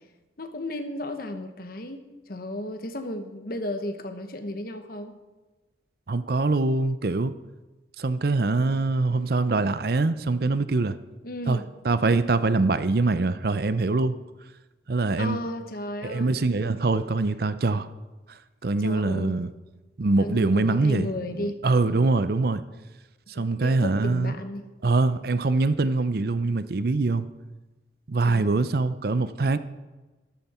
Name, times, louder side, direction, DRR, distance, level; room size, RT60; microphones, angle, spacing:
voice 1, 0.4-5.2 11.2-11.7 15.2-16.4 18.8-19.4 20.2-22.1 23.3-24.7 28.2-28.5, left 1 dB, 55° left, 1.1 m, -34 dB
voice 2, 6.1-7.3 8.0-11.0 11.5-11.6 11.8-14.2 14.9-15.4 16.0-17.9 18.3-19.5 20.0-21.1 21.4-22.6 23.3-24.3 24.8-27.3 28.1-29.6, right 3 dB, 55° right, 0.6 m, -24 dB
13.0 x 12.5 x 4.3 m
head